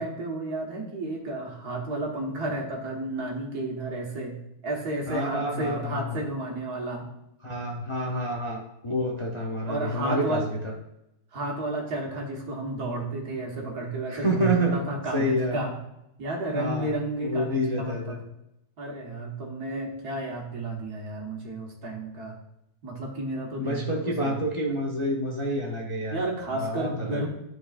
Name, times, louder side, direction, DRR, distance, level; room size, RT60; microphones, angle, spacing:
voice 1, 0.0-4.4 4.6-7.1 9.7-10.4 11.3-15.7 16.2-18.2 18.8-22.3 22.8-24.4 26.1-27.3, right 2 dB, 75° right, -1 dB, 2.0 m, -32 dB
voice 2, 5.1-6.2 7.4-10.7 14.1-14.8 15.1-15.6 16.5-16.9 17.2-18.2 23.6-26.2 26.5-27.3, equal, 30° left, -1 dB, 0.5 m, -28 dB
12.5 x 4.6 x 2.5 m, 0.85 s
omnidirectional pair, 1.7 m